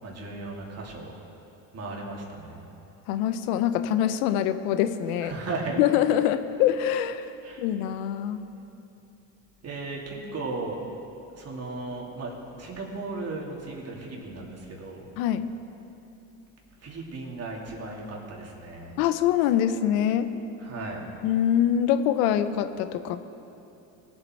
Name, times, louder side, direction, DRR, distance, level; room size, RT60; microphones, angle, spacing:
voice 1, 0.0-1.1 1.7-2.6 5.2-5.8 7.4-7.6 9.6-10.8 11.3-15.1 16.8-19.0 20.6-21.1, right 3 dB, 35° right, -2 dB, 2.9 m, -36 dB
voice 2, 3.1-5.3 5.8-7.3 7.6-8.4 15.2-15.5 19.0-20.3 21.2-23.2, left 10 dB, 80° left, 11 dB, 0.8 m, -24 dB
20.0 x 7.8 x 4.6 m, 2.9 s
supercardioid pair, 95°, 42 cm